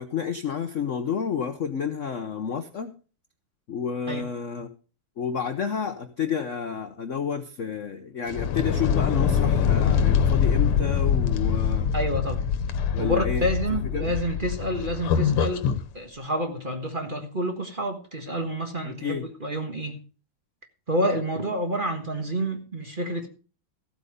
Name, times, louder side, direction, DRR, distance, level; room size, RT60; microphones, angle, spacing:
voice 1, 0.0-2.9 3.7-4.7 5.2-11.9 12.9-13.5 13.9-14.1 18.8-19.3, left 7 dB, 55° left, 0.9 m, -30 dB
sound 1, 8.3-15.8, left 7 dB, 90° left, 1.9 m, -24 dB
voice 2, 11.9-12.4 13.0-15.7 15.9-20.0 20.9-23.3, equal, 25° right, 1.4 m, -28 dB
15.0 x 8.2 x 5.1 m
omnidirectional pair, 2.4 m